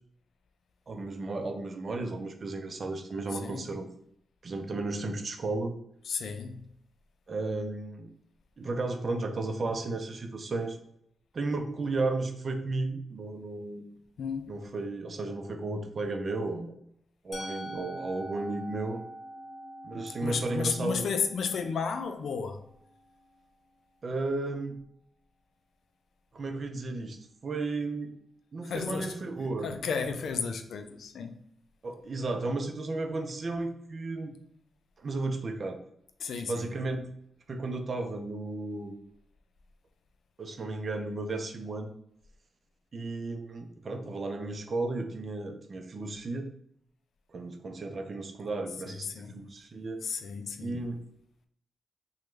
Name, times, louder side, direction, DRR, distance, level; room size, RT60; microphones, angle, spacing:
voice 1, 0.9-3.9 4.4-5.7 7.3-8.1 8.6-10.8 11.3-14.0 14.5-16.7 17.2-19.0 19.8-21.1 24.0-24.8 26.3-28.2 28.5-29.8 31.8-34.3 35.0-35.8 36.5-37.0 37.5-39.0 40.4-41.9 42.9-46.5 47.3-50.0 50.6-51.0, right 2 dB, 55° right, 0.5 m, -34 dB
voice 2, 6.1-6.6 14.2-14.5 20.2-22.6 28.6-29.2 29.6-31.4 36.2-36.7 48.9-49.4 50.0-50.7, left 5 dB, 70° left, 0.3 m, -33 dB
Musical instrument, 17.3-23.2, equal, 50° left, 0.8 m, -45 dB
3.0 x 2.2 x 3.2 m
supercardioid pair, 45°, 0 cm